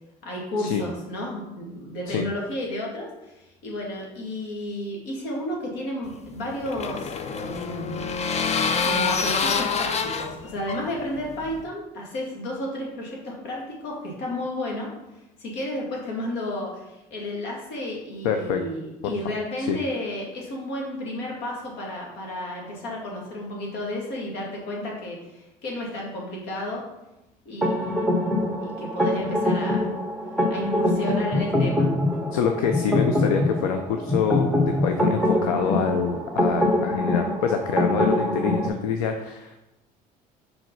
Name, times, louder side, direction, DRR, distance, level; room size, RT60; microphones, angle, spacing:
voice 1, 0.2-8.0 8.8-14.9 15.4-26.8 27.5-29.9 30.5-31.9, left 1 dB, 70° left, -2 dB, 2.3 m, -32 dB
sound 1, 6.1-11.6, left 5 dB, 40° left, 0.7 m, -27 dB
voice 2, 18.2-18.6 19.6-19.8 32.3-34.5 34.8-39.6, left 7 dB, 90° left, 5 dB, 0.6 m, -26 dB
sound 2, 27.6-38.7, left 1 dB, 5° left, 1.5 m, -24 dB
5.2 x 4.9 x 5.4 m, 0.96 s
supercardioid pair, 75°, 18 cm